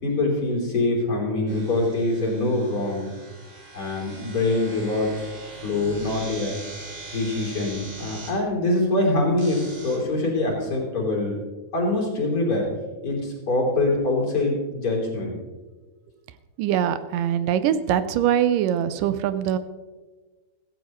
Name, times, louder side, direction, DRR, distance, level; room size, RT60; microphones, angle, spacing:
voice 1, 0.0-3.1 3.7-5.3 5.6-6.6 7.1-11.4 11.7-12.7 13.0-15.4, left 2 dB, 45° left, -3 dB, 4.1 m, -24 dB
sound 1, 1.5-8.3 9.4-10.0, right 2 dB, 50° right, 5.6 m, -41 dB
voice 2, 16.6-19.6, right 10 dB, 85° right, 12 dB, 2.3 m, -23 dB
16.0 x 15.5 x 3.1 m, 1.3 s
omnidirectional pair, 3.7 m